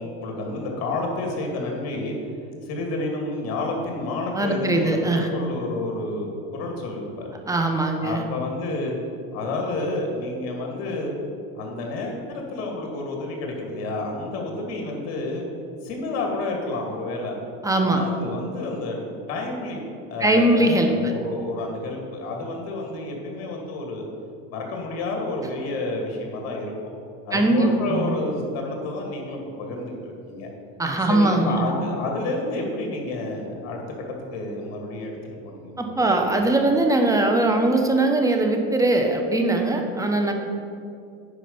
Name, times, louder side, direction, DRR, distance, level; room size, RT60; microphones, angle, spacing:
voice 1, 0.0-2.2 2.6-7.3 8.0-8.9 9.3-11.1 11.5-15.5 15.8-17.4 17.8-19.0 19.3-19.8 20.1-24.0 24.5-26.7 27.3-30.5 31.1-36.2, left 2 dB, 55° left, 1 dB, 2.5 m, -30 dB
voice 2, 4.3-5.3 7.5-8.2 17.6-18.0 20.2-21.1 27.3-28.2 30.8-31.7 35.8-40.3, right 2 dB, 10° right, 3 dB, 1.0 m, -21 dB
9.7 x 4.9 x 7.0 m, 2.5 s
supercardioid pair, 125°, 30 cm